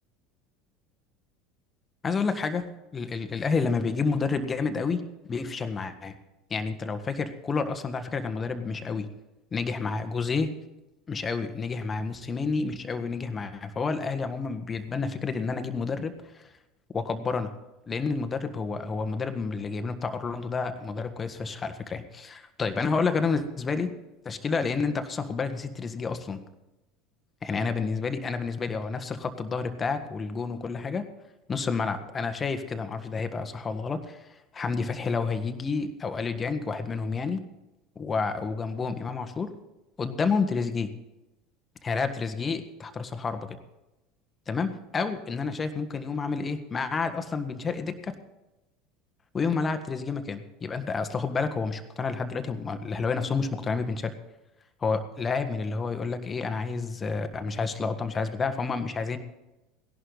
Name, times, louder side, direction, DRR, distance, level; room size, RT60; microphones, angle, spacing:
voice 1, 2.0-2.7 2.9-5.0 5.3-6.1 6.5-9.1 9.5-10.5 11.1-16.4 16.9-17.5 17.9-23.9 24.2-26.4 27.4-31.0 31.5-34.3 34.5-37.4 37.9-39.5 40.0-40.9 41.8-43.6 44.5-48.1 49.3-54.1 54.8-59.2, left 4 dB, 25° left, 9 dB, 1.5 m, -29 dB
17.5 x 11.5 x 4.1 m, 0.98 s
hypercardioid pair, 75°, 0 cm